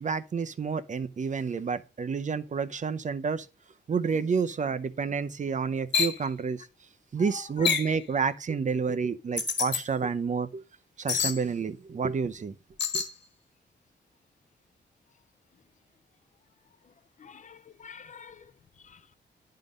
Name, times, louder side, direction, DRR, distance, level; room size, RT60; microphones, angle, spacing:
voice 1, 0.0-3.5 3.9-6.6 7.1-10.6 11.0-12.6 12.9-13.0, right 5 dB, 40° right, 0.6 m, -29 dB
sound 1, 5.9-6.2 7.7-8.0 9.4-9.8 11.1-11.4 12.8-13.1, left 6 dB, 65° left, 1.6 m, -27 dB
voice 2, 7.2-7.7 17.2-18.4 18.9-19.1, left 6 dB, 40° left, 0.5 m, -46 dB
11.0 x 3.8 x 5.1 m
wide cardioid pair, 115°, 19 cm